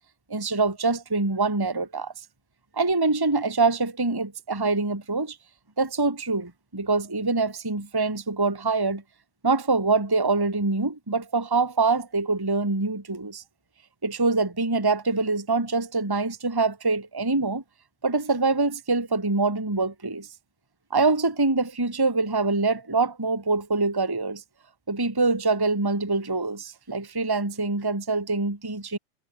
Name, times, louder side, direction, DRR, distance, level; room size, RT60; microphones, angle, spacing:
voice 1, 0.3-2.1 2.8-5.4 5.8-9.0 9.4-13.4 14.0-17.6 18.0-20.3 20.9-24.4 24.9-29.0, right 3 dB, 10° right, 2.4 m, -24 dB
omnidirectional pair, 3.3 m